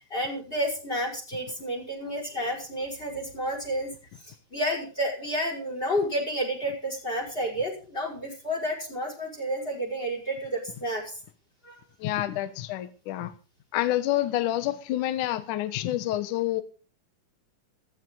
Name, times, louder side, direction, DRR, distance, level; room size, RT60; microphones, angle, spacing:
voice 1, 0.1-3.9 4.3-11.0 11.6-11.7, equal, 15° left, 2 dB, 5.5 m, -30 dB
voice 2, 12.0-13.3 13.7-16.6, left 14 dB, 65° left, 11 dB, 2.5 m, -28 dB
15.5 x 15.0 x 4.0 m, 0.36 s
omnidirectional pair, 4.1 m